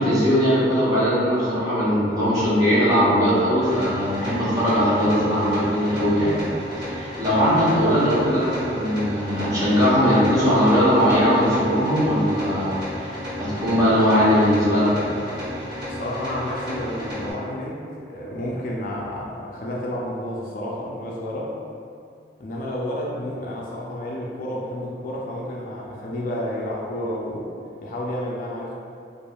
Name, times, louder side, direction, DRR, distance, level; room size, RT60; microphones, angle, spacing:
voice 1, 0.0-6.3 6.8-13.1 13.4-14.9, equal, 20° right, -10 dB, 0.7 m, -20 dB
sound 1, 3.6-17.3, equal, 75° right, 1.0 m, -33 dB
voice 2, 15.9-21.6 22.4-27.5 27.8-28.7, left 1 dB, 45° left, -4 dB, 0.3 m, -30 dB
3.1 x 2.4 x 2.2 m, 2.4 s
head